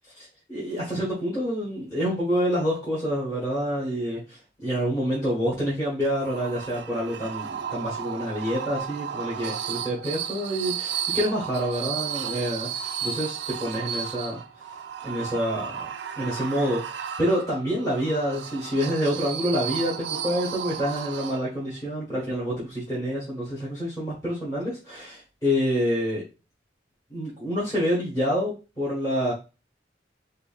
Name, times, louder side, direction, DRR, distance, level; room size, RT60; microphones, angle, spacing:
voice 1, 0.1-12.7 13.0-14.4 15.0-15.9 16.1-26.2 27.1-29.3, equal, 20° left, -6 dB, 1.3 m, -27 dB
sound 1, 6.0-21.7, right 8 dB, 75° right, 0.4 m, -34 dB
4.9 x 2.6 x 2.3 m, 0.30 s
head